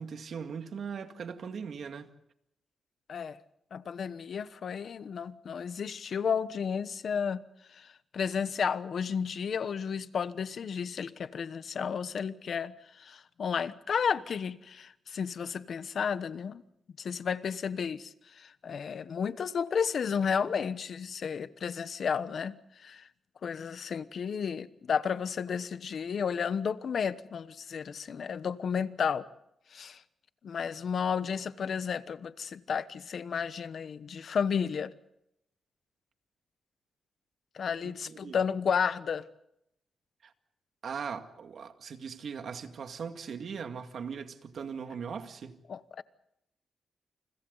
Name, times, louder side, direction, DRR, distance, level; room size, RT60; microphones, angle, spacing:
voice 1, 0.0-2.1 37.8-38.4 40.2-40.3 40.8-45.6, right 6 dB, 65° right, 2.1 m, -39 dB
voice 2, 3.7-7.4 7.7-16.6 17.0-23.1 23.4-29.2 29.7-30.0 30.4-34.9 37.5-39.2 45.7-46.0, left 6 dB, 60° left, 1.1 m, -32 dB
29.5 x 29.5 x 4.0 m
cardioid pair, 105°, 0 cm